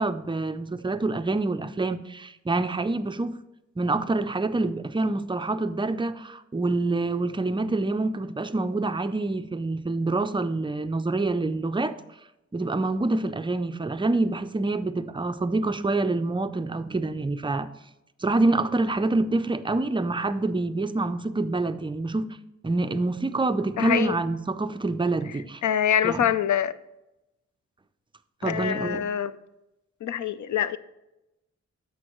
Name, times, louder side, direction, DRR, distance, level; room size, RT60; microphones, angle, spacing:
voice 1, 0.0-3.3 3.8-11.9 12.5-17.7 18.2-22.4 22.6-25.6 26.0-26.3 28.4-29.0, right 2 dB, 15° right, 0.4 m, -26 dB
voice 2, 23.8-24.2 25.6-26.7 28.4-29.3 30.0-30.8, left 9 dB, 80° left, 0.5 m, -25 dB
10.5 x 7.1 x 3.0 m
wide cardioid pair, 100°, 29 cm